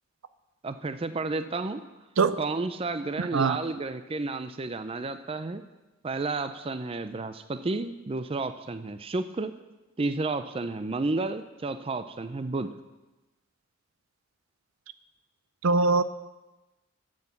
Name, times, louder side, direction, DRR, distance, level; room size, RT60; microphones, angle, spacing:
voice 1, 0.6-1.8 2.4-5.6 6.0-9.5 10.0-12.7, right 3 dB, 30° right, 11 dB, 0.4 m, -31 dB
voice 2, 3.2-3.6 15.6-16.0, right 4 dB, 85° right, 14 dB, 0.5 m, -22 dB
9.5 x 7.7 x 7.2 m, 1.1 s
head